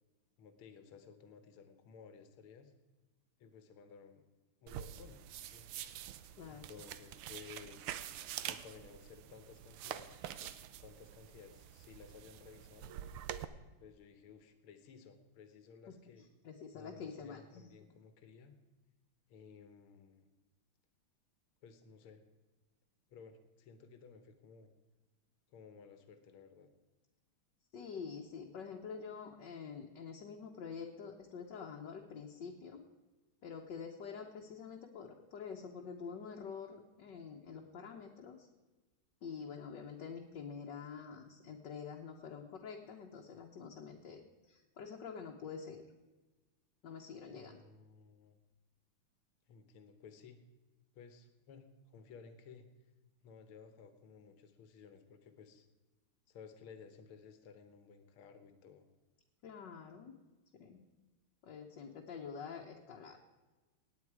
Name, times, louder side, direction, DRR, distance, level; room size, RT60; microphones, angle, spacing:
voice 1, 0.4-2.7 3.4-4.2 4.6-5.7 6.5-8.0 8.5-13.0 13.8-16.2 16.7-18.6 19.3-20.3 21.6-22.2 23.1-24.7 25.5-26.7 47.3-48.4 49.5-50.4 50.9-52.6 53.2-55.7 56.3-58.9, left 6 dB, 80° left, 9 dB, 2.0 m, -56 dB
sound 1, 4.7-13.4, right 11 dB, 85° right, 1.6 m, -46 dB
voice 2, 6.4-6.7 16.4-17.7 27.7-32.8 33.4-38.5 39.2-45.9 46.8-47.6 59.4-60.1 60.5-60.8 61.4-63.2, left 6 dB, 60° left, 1 dB, 1.5 m, -47 dB
17.5 x 9.2 x 4.8 m, 1.2 s
omnidirectional pair, 2.4 m